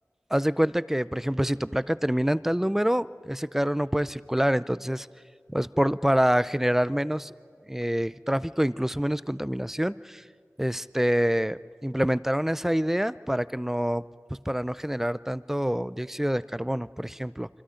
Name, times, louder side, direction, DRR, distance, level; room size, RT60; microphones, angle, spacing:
voice 1, 0.3-5.1 5.5-7.3 7.7-10.2 10.6-14.0 14.5-17.5, equal, 5° right, 17 dB, 0.5 m, -26 dB
26.0 x 25.5 x 5.1 m, 2.1 s
wide cardioid pair, 55°, 5 cm